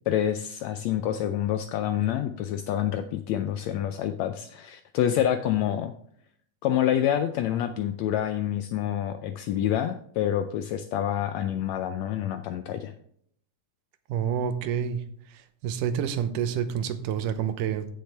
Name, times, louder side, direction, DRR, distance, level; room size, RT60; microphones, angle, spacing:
voice 1, 0.1-5.9 6.6-12.9, left 11 dB, 80° left, 9 dB, 1.6 m, -27 dB
voice 2, 14.1-15.0 15.6-17.9, right 8 dB, 85° right, 10 dB, 2.4 m, -28 dB
15.0 x 6.7 x 3.4 m, 0.67 s
omnidirectional pair, 3.6 m